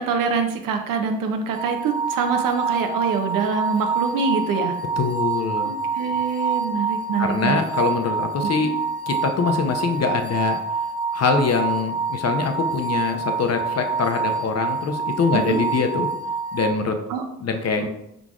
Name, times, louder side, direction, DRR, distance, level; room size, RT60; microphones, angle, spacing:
voice 1, 0.0-4.8 5.6-7.6 8.6-8.7 15.3-15.6 17.1-17.2 17.8-17.9, right 5 dB, 70° right, 5 dB, 0.7 m, -25 dB
sound 1, 1.5-16.7, right 4 dB, 25° right, 0.8 m, -26 dB
voice 2, 5.0-5.7 7.2-8.7 9.1-10.6 11.1-16.1 16.5-17.0 17.4-17.9, left 4 dB, 50° left, 6 dB, 0.7 m, -23 dB
4.6 x 3.8 x 2.4 m, 0.82 s
hypercardioid pair, 45°, 34 cm